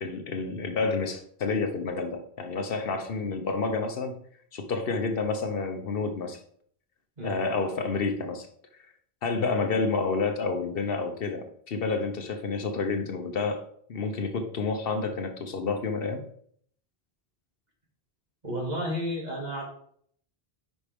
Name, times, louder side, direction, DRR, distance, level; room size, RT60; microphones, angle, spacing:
voice 1, 0.0-4.1 4.5-6.4 7.2-8.5 9.2-13.6 13.9-16.3, left 4 dB, 65° left, 6 dB, 1.0 m, -29 dB
voice 2, 18.4-19.7, equal, 45° right, -2 dB, 2.3 m, -32 dB
9.6 x 5.3 x 3.5 m, 0.62 s
omnidirectional pair, 1.0 m